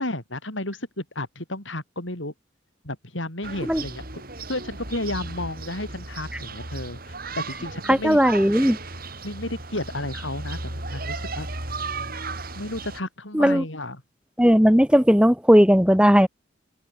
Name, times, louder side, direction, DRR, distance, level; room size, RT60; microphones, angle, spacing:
voice 1, 0.0-2.3 2.8-4.2 4.5-8.2 9.2-11.5 12.5-14.0, left 1 dB, 75° left, 7.6 m, -32 dB
sound 1, 3.4-13.0, right 3 dB, 50° right, 6.6 m, -35 dB
voice 2, 7.9-8.8 13.3-13.6 14.4-16.3, equal, 5° right, 2.7 m, -17 dB
open air
head